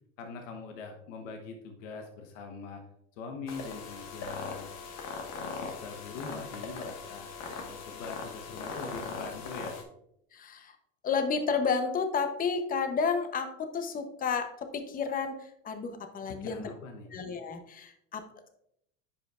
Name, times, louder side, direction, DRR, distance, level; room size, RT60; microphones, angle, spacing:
voice 1, 0.2-2.8 3.2-4.7 5.4-7.3 7.6-9.8 16.3-17.1, left 4 dB, 75° left, 4 dB, 1.1 m, -43 dB
sound 1, 3.5-9.8, left 4 dB, 45° left, 1.5 m, -40 dB
voice 2, 10.3-10.8 11.0-16.7 17.1-18.2, left 5 dB, 25° left, 7 dB, 0.8 m, -31 dB
9.9 x 5.4 x 2.4 m, 0.76 s
supercardioid pair, 115°, 37 cm